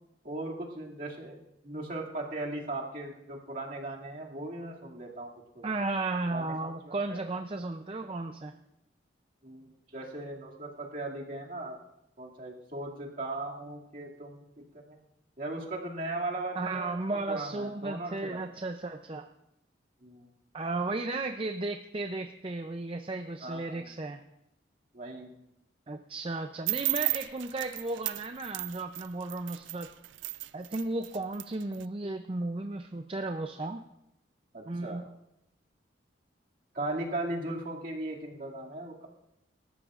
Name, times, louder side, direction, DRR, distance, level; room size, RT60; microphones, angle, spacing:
voice 1, 0.2-5.3 5.5-5.6 6.3-7.2 9.4-11.8 12.2-14.4 14.7-15.0 15.4-17.0 17.3-18.4 20.0-20.3 23.4-23.9 24.9-25.4 34.5-35.1 36.7-39.1, right 2 dB, 45° right, -2 dB, 2.3 m, -38 dB
voice 2, 5.6-8.5 16.5-19.3 20.5-24.2 25.9-29.9 30.5-33.8 34.7-35.0, right 2 dB, 30° right, 7 dB, 0.5 m, -34 dB
sound 1, 26.7-31.8, right 17 dB, 80° right, 0.4 m, -34 dB
25.0 x 13.5 x 2.5 m, 0.84 s
head